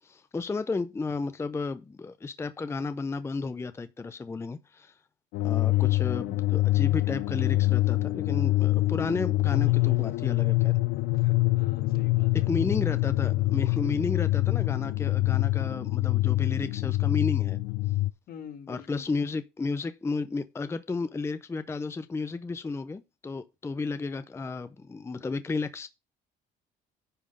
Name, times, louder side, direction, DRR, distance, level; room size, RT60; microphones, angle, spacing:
voice 1, 0.0-4.9 5.4-10.7 12.3-17.6 18.7-25.9, left 3 dB, 15° left, 0.5 m, -33 dB
sound 1, 5.3-18.1, left 19 dB, 85° left, 0.4 m, -25 dB
voice 2, 11.2-12.5 18.3-19.0, left 8 dB, 65° left, 1.5 m, -46 dB
10.0 x 3.6 x 6.7 m
cardioid pair, 110°, 17 cm